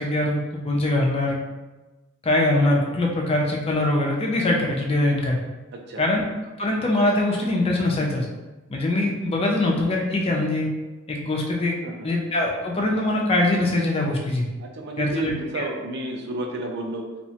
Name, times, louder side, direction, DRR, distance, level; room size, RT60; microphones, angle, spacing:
voice 1, 0.0-1.4 2.2-5.4 6.0-6.2 6.6-8.3 8.7-10.7 11.1-11.8 12.0-14.5 15.0-15.7, left 1 dB, 25° left, -1 dB, 0.3 m, -23 dB
voice 2, 5.7-6.0 11.8-12.1 14.6-17.0, right 2 dB, 50° right, 1 dB, 0.4 m, -31 dB
2.7 x 2.1 x 2.7 m, 1.1 s
head